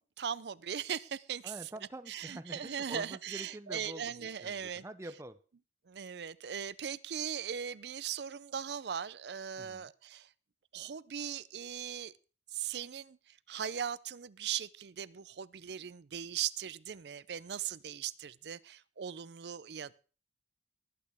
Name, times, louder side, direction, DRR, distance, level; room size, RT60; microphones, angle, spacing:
voice 1, 0.0-1.5 2.1-4.8 5.9-10.3 10.7-12.1 12.5-19.9, right 8 dB, 65° right, 0.5 m, -39 dB
voice 2, 1.4-5.4 9.6-9.9, right 1 dB, 15° right, 0.6 m, -46 dB
20.0 x 8.8 x 3.5 m
head